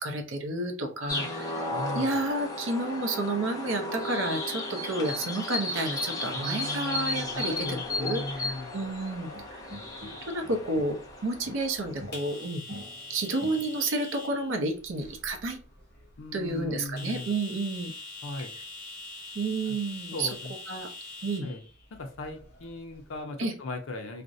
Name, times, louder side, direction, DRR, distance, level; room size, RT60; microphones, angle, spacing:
voice 1, 0.0-1.7 1.9-9.6 10.0-11.0 11.2-12.6 13.1-15.6 16.3-17.9 19.3-20.3 20.7-20.9 21.2-21.5 23.4-23.5, right 2 dB, 80° right, 5 dB, 0.6 m, -31 dB
sound 1, 1.1-12.2, left 2 dB, 20° left, 0.4 m, -34 dB
voice 2, 1.7-2.2 6.3-8.9 16.2-17.3 18.2-18.5 19.7-19.8 20.1-20.5 21.4-21.6 21.9-24.2, left 2 dB, 80° left, 5 dB, 0.6 m, -37 dB
sound 2, 7.8-23.2, left 2 dB, 50° left, 0.8 m, -46 dB
sound 3, 9.3-11.1 11.4-14.0, equal, 55° right, 0.8 m, -46 dB
2.5 x 2.0 x 2.6 m, 0.37 s
head